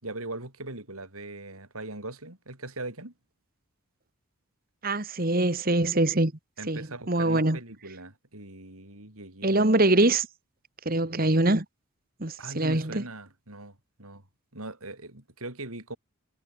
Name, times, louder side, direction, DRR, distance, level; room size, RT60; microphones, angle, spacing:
voice 1, 0.0-3.1 6.6-9.7 12.4-14.2 14.5-16.0, right 2 dB, 75° right, 5.8 m, -40 dB
voice 2, 4.8-6.3 6.7-7.6 9.4-10.3 10.9-11.7 12.2-13.0, right 2 dB, 40° right, 1.7 m, -23 dB
head